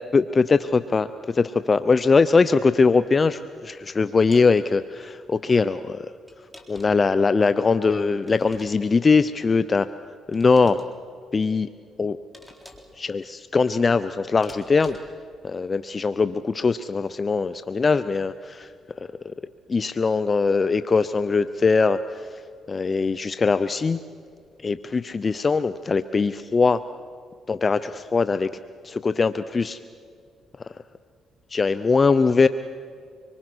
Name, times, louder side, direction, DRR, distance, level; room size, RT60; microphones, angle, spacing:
voice 1, 0.0-6.1 6.7-9.9 10.3-10.8 11.3-11.7 12.0-12.2 13.0-15.0 15.4-18.7 19.0-19.3 19.7-22.4 22.7-24.0 24.6-26.8 27.5-28.5 28.8-29.8 31.5-32.5, left 4 dB, 35° left, 13 dB, 0.7 m, -21 dB
sound 1, 4.3-4.5 6.3-7.1 8.2-9.0 10.3-10.9 12.3-13.0 14.4-15.2, left 1 dB, ahead, 3.9 m, -47 dB
25.5 x 24.0 x 6.2 m, 2.2 s
cardioid pair, 75°, 0 cm